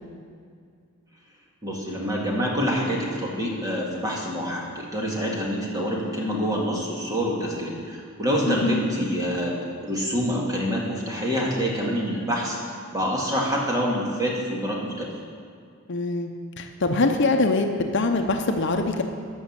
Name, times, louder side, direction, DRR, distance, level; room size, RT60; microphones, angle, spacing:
voice 1, 1.6-9.6 9.8-12.6 12.9-15.1, equal, 15° right, -3 dB, 2.1 m, -26 dB
voice 2, 8.5-8.8 15.9-16.3 16.6-19.0, left 3 dB, 55° left, 5 dB, 0.7 m, -23 dB
13.0 x 6.3 x 7.4 m, 2.2 s
head